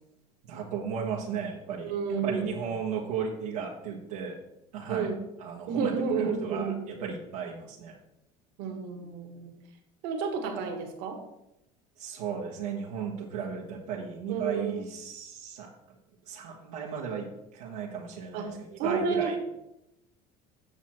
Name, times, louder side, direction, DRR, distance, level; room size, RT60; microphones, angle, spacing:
voice 1, 0.4-1.9 2.2-4.4 4.7-5.1 5.4-8.0 12.0-16.0 16.2-19.4, right 6 dB, 90° right, -3 dB, 1.4 m, -35 dB
voice 2, 1.8-2.5 4.9-5.2 5.7-6.8 8.6-9.5 10.0-11.2 14.3-14.8 18.3-19.3, right 5 dB, 70° right, 4 dB, 1.8 m, -31 dB
8.1 x 6.2 x 4.5 m, 0.86 s
supercardioid pair, 85°, 18 cm